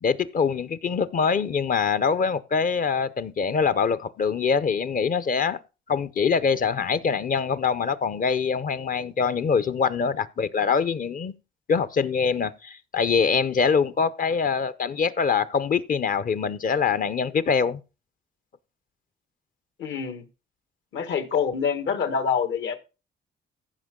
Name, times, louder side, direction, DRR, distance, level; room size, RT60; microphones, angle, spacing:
voice 1, 0.0-5.6 5.9-11.3 11.7-17.8, left 6 dB, 45° left, 0.7 m, -24 dB
voice 2, 19.8-20.2 20.9-22.8, left 6 dB, 70° left, 1.5 m, -26 dB
15.0 x 5.8 x 3.7 m
cardioid pair, 90°, 20 cm